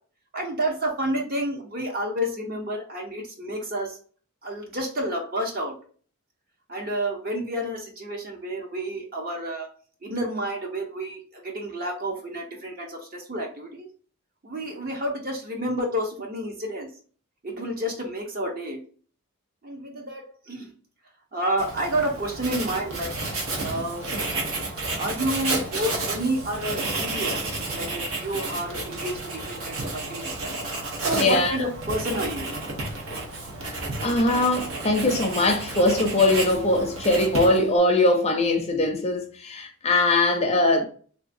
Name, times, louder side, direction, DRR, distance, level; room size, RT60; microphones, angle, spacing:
voice 1, 0.3-4.0 4.4-5.8 6.7-9.7 10.0-13.9 14.4-16.9 17.4-18.8 19.6-20.7 21.3-23.1 23.6-24.0 25.0-30.5 31.0-32.5, right 1 dB, 45° right, 0.8 m, -30 dB
Writing, 21.6-37.8, right 2 dB, 70° right, 0.9 m, -31 dB
voice 2, 31.2-31.6 34.0-40.8, left 2 dB, 30° left, 0.5 m, -21 dB
3.4 x 2.7 x 2.5 m
head